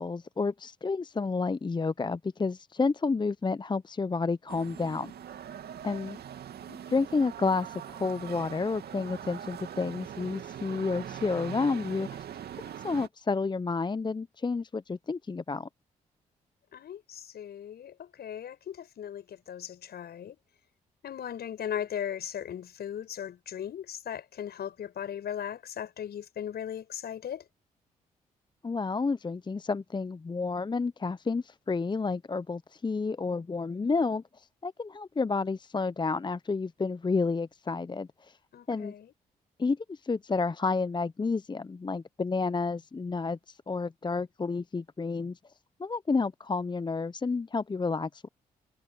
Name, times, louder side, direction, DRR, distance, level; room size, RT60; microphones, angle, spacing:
voice 1, 0.0-5.1 5.8-6.2 6.7-12.2 12.8-15.7 28.6-38.4 38.7-38.9 39.6-45.4 45.8-48.3, left 4 dB, 25° left, 0.7 m, -30 dB
sound 1, 4.5-13.1, right 9 dB, 65° right, 2.6 m, -42 dB
voice 2, 16.7-20.4 21.0-27.5 38.5-39.1, left 9 dB, 60° left, 7.0 m, -38 dB
hypercardioid pair, 40°, 18 cm